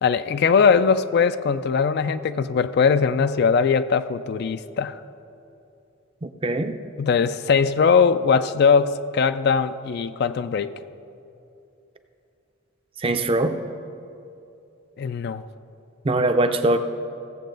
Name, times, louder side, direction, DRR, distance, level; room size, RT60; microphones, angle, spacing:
voice 1, 0.0-5.0 7.0-10.7 15.0-15.5, left 5 dB, 50° left, 12 dB, 0.3 m, -20 dB
voice 2, 6.2-6.8 13.0-13.6 16.0-16.8, right 2 dB, 25° right, 8 dB, 0.5 m, -22 dB
16.5 x 7.4 x 3.9 m, 2.7 s
head